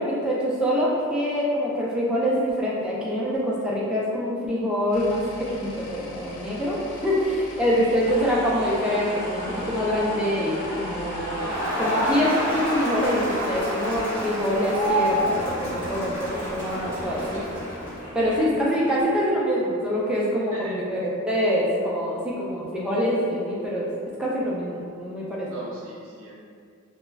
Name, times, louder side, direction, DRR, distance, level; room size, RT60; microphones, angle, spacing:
voice 1, 0.0-5.2 5.5-11.5 11.8-15.3 15.6-17.6 18.1-23.9 24.2-25.6, equal, 5° right, -6 dB, 0.3 m, -25 dB
sound 1, 4.9-11.7, left 1 dB, 80° left, 0.4 m, -41 dB
sound 2, 8.0-19.0, equal, 50° left, 0.9 m, -38 dB
Crowd, 11.1-18.1, equal, 20° left, 0.8 m, -28 dB
voice 2, 18.0-18.5 20.5-20.8 25.4-26.4, equal, 60° right, -5 dB, 0.6 m, -40 dB
2.3 x 2.0 x 3.3 m, 2.2 s
head